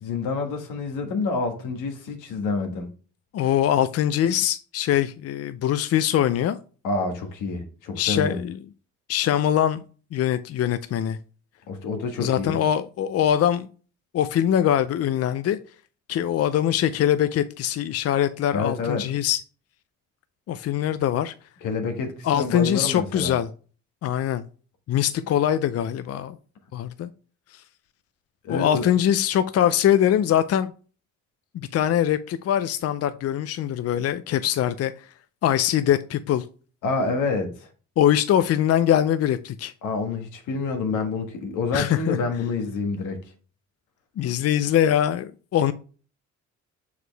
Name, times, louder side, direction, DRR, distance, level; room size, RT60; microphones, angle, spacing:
voice 1, 0.0-2.9 6.8-8.4 11.7-12.6 18.5-19.1 21.6-23.3 28.4-28.9 36.8-37.7 39.8-43.2, left 4 dB, 90° left, 1.5 m, -28 dB
voice 2, 3.3-6.6 7.9-8.6 9.1-9.8 10.1-11.2 12.2-13.7 14.1-15.6 16.1-19.4 20.5-21.3 22.2-23.5 24.0-24.5 24.9-26.4 26.7-27.1 27.5-27.6 28.5-30.7 31.5-35.1 35.4-36.4 38.0-39.7 41.7-42.2 44.2-45.7, left 10 dB, 55° left, 0.5 m, -22 dB
6.2 x 4.8 x 3.3 m
cardioid pair, 90°, 30 cm